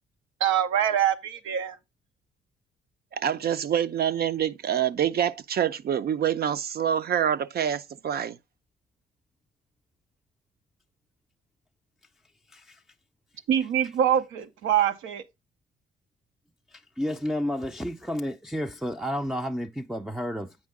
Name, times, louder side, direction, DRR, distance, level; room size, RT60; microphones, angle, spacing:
voice 1, 0.4-1.8 13.5-15.2, right 9 dB, 85° right, 0.7 m, -24 dB
voice 2, 3.2-8.4, right 9 dB, 50° right, 0.6 m, -26 dB
voice 3, 12.5-12.8 16.7-20.6, equal, ahead, 0.5 m, -31 dB
8.5 x 5.2 x 3.6 m
cardioid pair, 90°, 20 cm